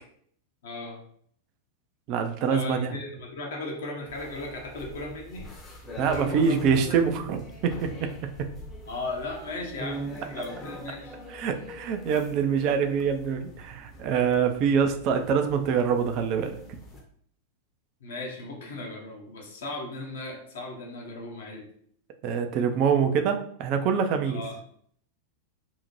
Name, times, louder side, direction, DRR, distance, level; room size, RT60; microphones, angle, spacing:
voice 1, 0.6-1.0 2.5-5.6 6.1-6.6 6.8-7.0 8.0-8.2 8.9-11.2 18.0-21.6 24.2-24.6, left 2 dB, 60° left, 0 dB, 0.7 m, -37 dB
voice 2, 2.1-3.0 6.0-8.1 11.3-16.6 22.2-24.4, right 6 dB, 40° right, 7 dB, 0.3 m, -25 dB
sound 1, 4.1-17.0, equal, 20° left, 0.6 m, -43 dB
2.7 x 2.1 x 2.9 m, 0.63 s
figure-of-eight pair, 90°, 0 cm